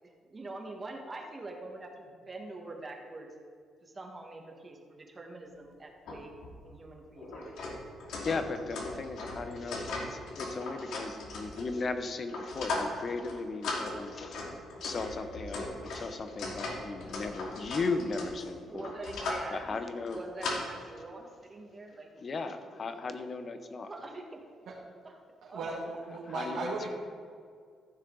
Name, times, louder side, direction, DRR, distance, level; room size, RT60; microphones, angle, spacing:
voice 1, 0.0-3.3 3.8-6.3 6.6-7.6 18.7-19.8 20.1-22.1 23.8-24.4 25.0-25.2 25.5-25.8, right 2 dB, 30° right, 2 dB, 1.7 m, -44 dB
sound 1, 6.1-6.2 6.4-6.5 7.2-11.9 12.3-13.0 13.2-13.4 13.6-19.5 20.0-20.6, left 2 dB, 80° left, 2.2 m, -38 dB
voice 2, 8.2-14.5 14.8-18.9 19.5-20.2 22.2-23.9 26.3-26.9, left 3 dB, 45° left, 9 dB, 0.9 m, -36 dB
voice 3, 25.4-26.9, right 3 dB, 75° right, -6 dB, 1.9 m, -36 dB
14.5 x 6.5 x 4.0 m, 2.2 s
cardioid pair, 90°, 0 cm